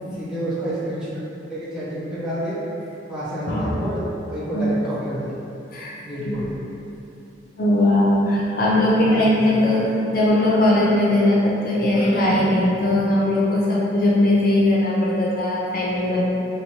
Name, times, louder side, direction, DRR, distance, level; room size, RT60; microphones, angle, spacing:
voice 1, 0.2-1.2 1.5-2.6 3.1-4.0 4.3-5.4 6.0-6.6 8.9-9.6, equal, 5° right, -12 dB, 0.9 m, -29 dB
voice 2, 4.5-4.8 5.7-5.9 6.2-6.5 7.6-16.2, left 1 dB, 50° left, -6 dB, 0.5 m, -19 dB
3.0 x 2.7 x 4.2 m, 2.9 s
head